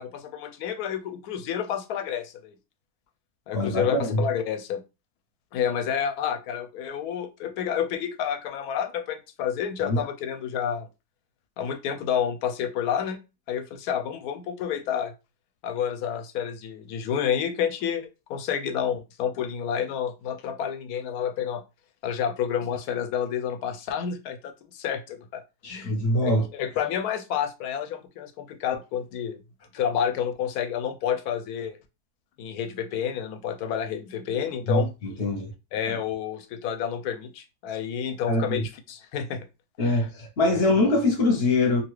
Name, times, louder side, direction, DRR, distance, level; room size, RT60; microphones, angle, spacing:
voice 1, 0.0-2.5 3.5-4.8 5.5-10.9 11.6-13.2 13.5-15.1 15.6-21.6 22.0-25.4 25.7-25.9 26.2-29.4 29.7-31.8 32.4-34.9 35.7-39.4 39.8-40.0, left 8 dB, 75° left, 1.0 m, -29 dB
voice 2, 3.5-4.2 9.8-10.0 25.6-26.4 34.7-35.5 35.9-36.0 38.3-38.6 39.8-41.8, left 2 dB, 45° left, 0.9 m, -23 dB
2.8 x 2.4 x 3.1 m
omnidirectional pair, 1.7 m